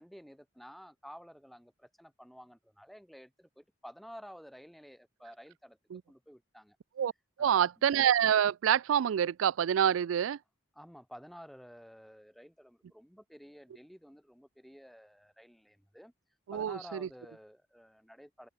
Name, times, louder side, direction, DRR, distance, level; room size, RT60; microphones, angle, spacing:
voice 1, 0.0-5.8 6.1-6.8 7.4-7.7 10.7-16.1 16.5-18.5, equal, ahead, 6.7 m, -52 dB
voice 2, 7.4-10.4 16.5-17.0, right 9 dB, 85° right, 0.3 m, -27 dB
open air
head